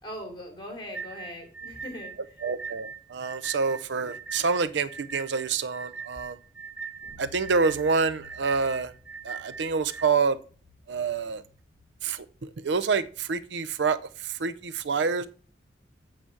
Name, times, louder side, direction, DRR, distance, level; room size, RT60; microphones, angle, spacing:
voice 1, 0.0-2.4, left 1 dB, 25° left, 3.4 m, -40 dB
sound 1, 0.9-10.1, right 5 dB, 5° right, 0.4 m, -40 dB
voice 2, 2.4-6.4 7.2-8.9 9.2-10.4 10.9-11.4 12.0-15.3, right 5 dB, 70° right, 0.5 m, -27 dB
sound 2, 7.0-13.9, left 2 dB, 85° right, 1.8 m, -55 dB
8.7 x 4.9 x 6.9 m
head